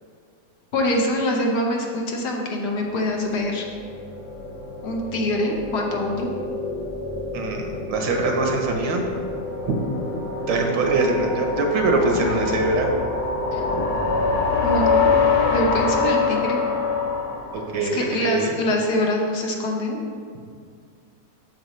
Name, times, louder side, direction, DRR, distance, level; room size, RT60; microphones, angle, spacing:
voice 1, 0.7-3.7 4.8-6.3 13.5-13.6 14.6-15.1 15.5-16.6 17.8-20.0, left 1 dB, 65° left, 0 dB, 1.4 m, -24 dB
sound 1, 3.0-18.3, left 4 dB, 90° left, 1.6 m, -25 dB
voice 2, 7.3-9.0 9.7-9.8 10.5-12.9 13.7-13.8 17.5-18.6, right 3 dB, 75° right, 2 dB, 1.6 m, -23 dB
7.8 x 7.1 x 3.1 m, 2.1 s
omnidirectional pair, 2.0 m